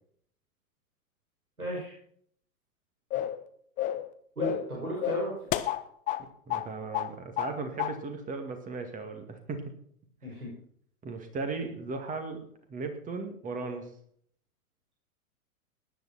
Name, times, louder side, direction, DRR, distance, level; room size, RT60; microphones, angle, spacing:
voice 1, 1.6-1.9 4.4-5.3 10.2-10.5, right 1 dB, 85° right, -4 dB, 6.3 m, -34 dB
sound 1, 3.1-3.4 3.8-4.1 4.4-4.7 5.0-6.2 6.5-6.7 6.9-7.5 7.8-8.0, left 12 dB, 20° left, 0.6 m, -30 dB
voice 2, 6.5-9.6 11.0-12.4 12.7-13.9, right 4 dB, 20° right, 6 dB, 2.3 m, -36 dB
17.5 x 10.5 x 4.3 m, 0.63 s
figure-of-eight pair, 105°, 43 cm